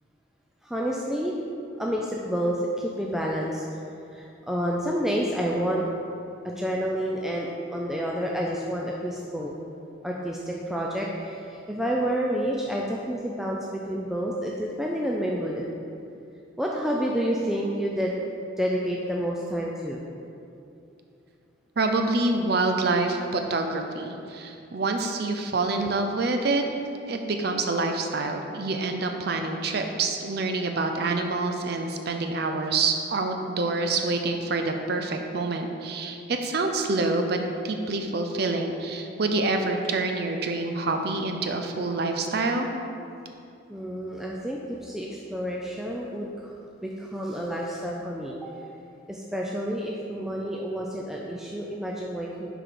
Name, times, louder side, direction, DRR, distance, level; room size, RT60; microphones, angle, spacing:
voice 1, 0.6-1.4 1.8-3.7 4.1-5.8 6.4-9.5 10.0-15.7 16.6-18.2 18.6-20.0 43.7-46.5 46.8-48.5 49.1-52.5, equal, ahead, -3 dB, 0.3 m, -29 dB
voice 2, 21.8-26.6 27.1-37.4 37.6-42.7, right 3 dB, 55° right, 4 dB, 0.5 m, -27 dB
5.9 x 5.0 x 4.7 m, 2.7 s
head